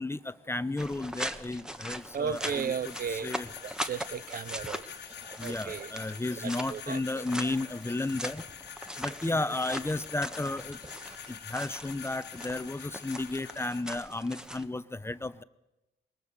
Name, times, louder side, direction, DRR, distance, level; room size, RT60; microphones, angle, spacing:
voice 1, 0.0-3.5 5.4-8.4 9.0-10.8 11.3-15.4, left 2 dB, 15° left, 0.9 m, -33 dB
sound 1, 0.8-14.7, equal, 5° right, 1.3 m, -41 dB
voice 2, 2.1-3.3 3.6-4.8 5.4-5.9 6.4-7.2, right 7 dB, 55° right, 0.6 m, -35 dB
sound 2, 2.3-13.8, left 8 dB, 75° left, 1.6 m, -46 dB
sound 3, 2.3-11.3, right 3 dB, 40° right, 6.9 m, -52 dB
22.0 x 19.5 x 6.8 m
cardioid pair, 70°, 18 cm